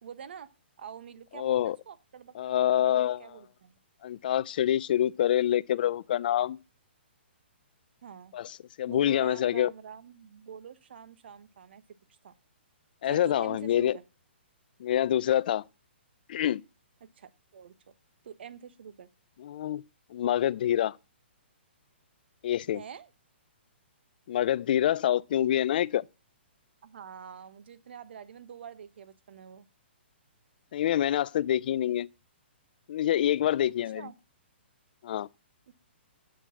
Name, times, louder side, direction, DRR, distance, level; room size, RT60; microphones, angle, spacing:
voice 1, 0.0-0.5 0.8-3.7 8.0-8.3 8.9-11.8 12.2-12.3 13.0-14.0 17.2-17.7 18.2-19.1 22.7-23.1 26.8-29.7 33.9-34.1, right 8 dB, 65° right, 1.1 m, -46 dB
voice 2, 1.4-1.8 2.4-3.2 4.0-6.6 8.3-9.7 13.0-14.0 14.8-15.6 16.3-16.6 19.4-19.8 20.1-21.0 22.4-22.8 24.3-26.0 30.7-32.1 32.9-34.1 35.0-35.3, left 11 dB, 50° left, 0.4 m, -26 dB
7.8 x 6.3 x 7.1 m
hypercardioid pair, 155°, 6 cm